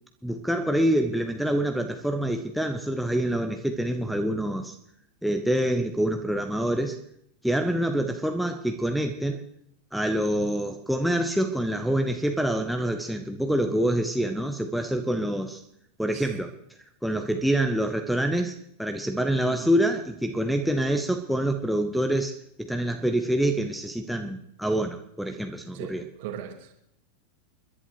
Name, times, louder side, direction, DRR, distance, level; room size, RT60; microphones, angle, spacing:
voice 1, 0.2-4.8 5.2-7.0 7.4-9.4 9.9-15.6 16.0-16.5 17.0-18.5 18.8-22.3 22.6-26.0, right 1 dB, ahead, 4 dB, 0.9 m, -26 dB
voice 2, 25.7-26.7, right 9 dB, 50° right, 4 dB, 2.2 m, -38 dB
29.5 x 11.0 x 3.1 m, 0.72 s
figure-of-eight pair, 90°, 0 cm